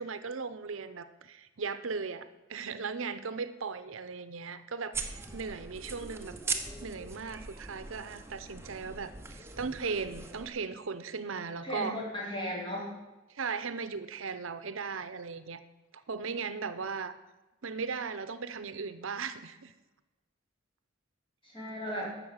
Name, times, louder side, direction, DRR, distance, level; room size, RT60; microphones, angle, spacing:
voice 1, 0.0-12.0 13.3-15.6 16.1-17.2 17.6-19.7, right 5 dB, 75° right, 13 dB, 0.7 m, -37 dB
sound 1, 4.9-10.5, right 4 dB, 10° right, 0.9 m, -40 dB
voice 2, 11.6-12.9 21.4-22.2, equal, 25° left, -4 dB, 4.4 m, -36 dB
11.5 x 6.9 x 8.8 m, 1.1 s
head